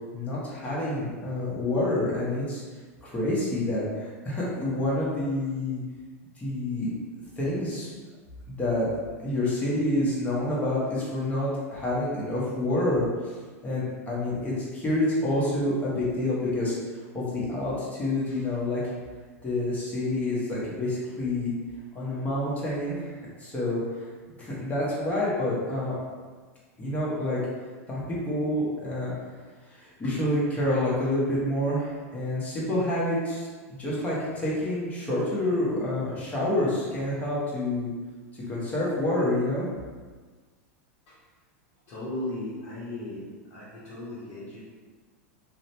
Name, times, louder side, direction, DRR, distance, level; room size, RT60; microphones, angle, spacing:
voice 1, 0.1-2.6 3.0-5.8 6.4-6.9 7.4-7.9 8.5-8.9 9.2-13.3 13.6-16.7 17.1-18.8 19.4-21.5 21.9-23.8 24.4-25.9 26.8-27.4 27.9-29.1 29.7-33.5 33.8-37.9 38.5-39.7, left 1 dB, 20° left, -7 dB, 1.0 m, -28 dB
voice 2, 41.9-43.2 43.5-44.6, left 1 dB, 50° left, -9 dB, 0.8 m, -37 dB
2.7 x 2.1 x 2.7 m, 1.4 s
hypercardioid pair, 110°, 8 cm